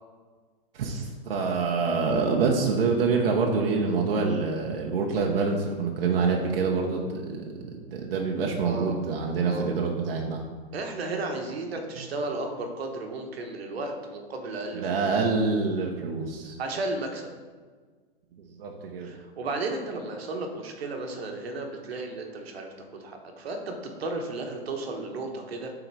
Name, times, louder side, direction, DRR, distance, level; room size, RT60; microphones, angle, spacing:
voice 1, 0.7-7.4 7.7-10.4 14.8-16.5 18.4-19.1, right 4 dB, 70° right, 0 dB, 1.1 m, -26 dB
voice 2, 8.6-9.0 9.4-9.7 10.7-15.3 16.6-17.3 19.0-25.7, right 2 dB, 90° right, 3 dB, 1.3 m, -34 dB
7.7 x 4.0 x 4.7 m, 1.5 s
supercardioid pair, 165°, 30 cm